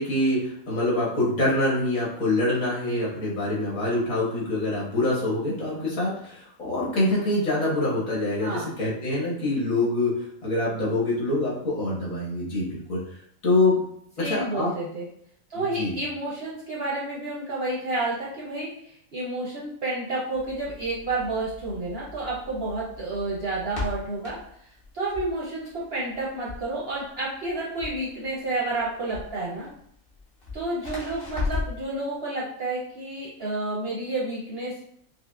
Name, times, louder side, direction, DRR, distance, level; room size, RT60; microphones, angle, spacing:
voice 1, 0.0-13.0 13.4-13.8 14.2-14.7 15.5-15.9, left 2 dB, 65° left, -6 dB, 1.6 m, -25 dB
voice 2, 8.4-8.7 14.2-15.1 15.5-24.4 24.9-29.7 30.5-34.8, right 2 dB, 55° right, -5 dB, 0.8 m, -30 dB
Crackle, 20.3-31.9, left 4 dB, 40° left, 1.3 m, -37 dB
5.2 x 2.0 x 2.3 m, 0.68 s
omnidirectional pair, 1.5 m